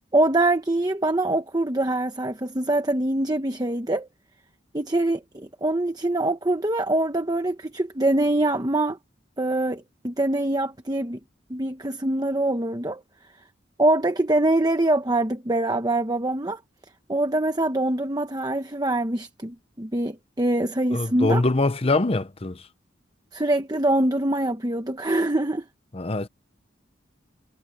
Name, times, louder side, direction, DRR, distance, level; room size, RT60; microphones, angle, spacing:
voice 1, 0.1-4.1 4.7-9.0 9.4-11.2 11.5-13.0 13.8-16.6 17.1-21.4 23.3-25.6, right 1 dB, 20° right, 1.1 m, -24 dB
voice 2, 20.9-22.7 25.9-26.3, left 2 dB, 30° left, 0.8 m, -23 dB
head